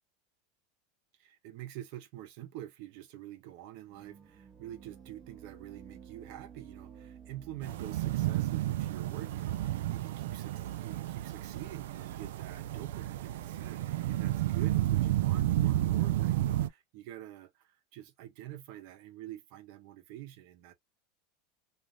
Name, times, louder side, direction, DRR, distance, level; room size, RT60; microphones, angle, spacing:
voice 1, 1.2-20.7, right 13 dB, 55° right, 0.7 m, -47 dB
sound 1, 3.9-11.0, right 7 dB, 15° right, 0.5 m, -53 dB
sound 2, 7.6-16.7, right 14 dB, 80° right, 0.3 m, -31 dB
2.6 x 2.4 x 3.1 m
supercardioid pair, 165°, 0 cm